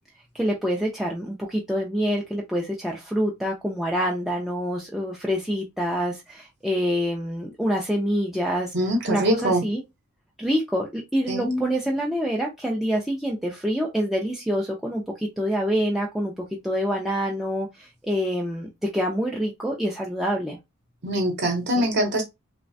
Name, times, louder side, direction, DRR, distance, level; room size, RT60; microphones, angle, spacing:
voice 1, 0.3-8.7 9.1-9.8 10.4-20.6 21.8-21.9, equal, ahead, 0.3 m, -26 dB
voice 2, 8.7-9.6 11.3-11.6 21.0-22.2, equal, 50° right, 0.8 m, -23 dB
3.1 x 2.1 x 2.6 m
head